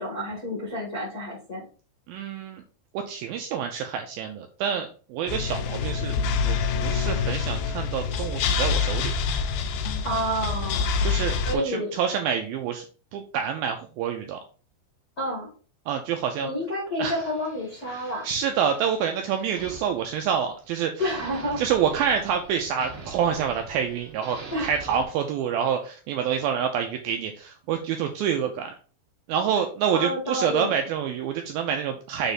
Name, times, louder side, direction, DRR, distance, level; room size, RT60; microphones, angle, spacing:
voice 1, 0.0-1.6 10.0-10.8 11.4-11.9 15.2-15.5 16.4-18.2 21.0-21.6 24.5-24.7 29.9-30.8, equal, 50° left, -3 dB, 1.0 m, -29 dB
voice 2, 2.1-2.6 3.1-6.2 6.4-9.1 11.0-12.9 13.1-14.4 15.9-16.5 17.0-17.2 17.9-20.9 21.6-28.7 29.3-32.3, right 8 dB, 85° right, 5 dB, 2.1 m, -27 dB
sound 1, 5.3-11.5, left 5 dB, 80° left, 2.2 m, -26 dB
sound 2, 17.0-20.7 21.0-25.0, right 3 dB, 55° right, 1.7 m, -44 dB
7.1 x 3.4 x 4.1 m, 0.39 s
omnidirectional pair, 4.8 m